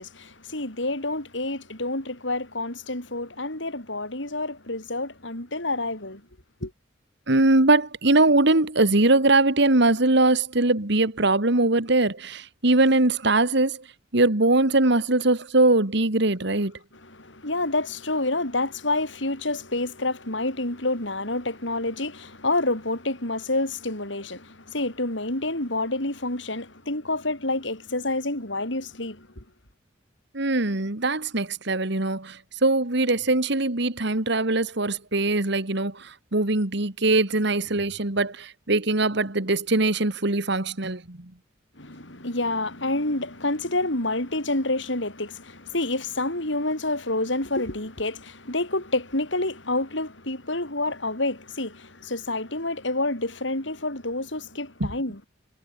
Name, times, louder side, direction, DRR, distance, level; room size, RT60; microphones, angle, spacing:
voice 1, 0.0-6.2 6.6-6.7 17.0-29.4 41.8-55.3, left 2 dB, 70° left, 6.5 m, -28 dB
voice 2, 7.3-13.8 14.1-16.7 30.3-41.3 54.8-54.9, right 2 dB, 65° right, 2.3 m, -22 dB
head